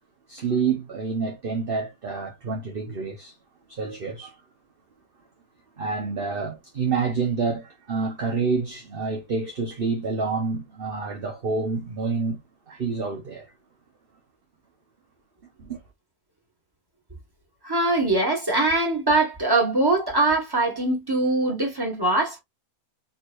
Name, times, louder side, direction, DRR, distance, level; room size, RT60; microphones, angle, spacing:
voice 1, 0.3-3.3 3.7-4.3 5.8-12.4 12.7-13.5 15.6-15.8, right 4 dB, 45° right, 1.1 m, -28 dB
voice 2, 17.6-22.4, right 2 dB, 15° right, 1.9 m, -22 dB
4.7 x 3.9 x 2.6 m
omnidirectional pair, 1.5 m